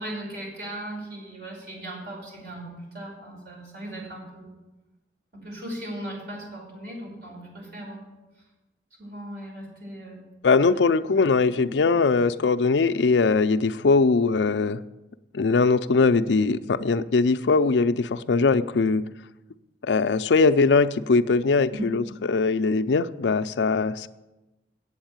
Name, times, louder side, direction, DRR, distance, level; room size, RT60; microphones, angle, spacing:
voice 1, 0.0-4.6 5.3-8.1 9.0-10.3 10.7-10.8 11.2-11.3 11.6-11.7 21.7-21.9, right 1 dB, 65° right, -2 dB, 5.4 m, -38 dB
voice 2, 10.4-14.8 15.3-19.0 19.8-24.1, left 4 dB, 85° left, 13 dB, 0.5 m, -21 dB
8.5 x 8.0 x 8.9 m, 1.0 s
head